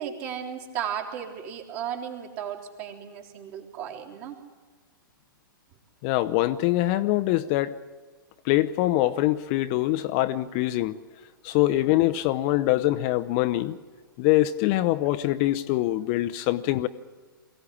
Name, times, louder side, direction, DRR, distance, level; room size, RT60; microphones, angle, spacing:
voice 1, 0.0-4.4, right 9 dB, 45° right, 3.4 m, -35 dB
voice 2, 6.0-7.7 8.5-11.0 11.4-13.8 14.2-16.9, left 16 dB, 40° left, 0.7 m, -24 dB
23.0 x 16.5 x 8.5 m
figure-of-eight pair, 115°, 12 cm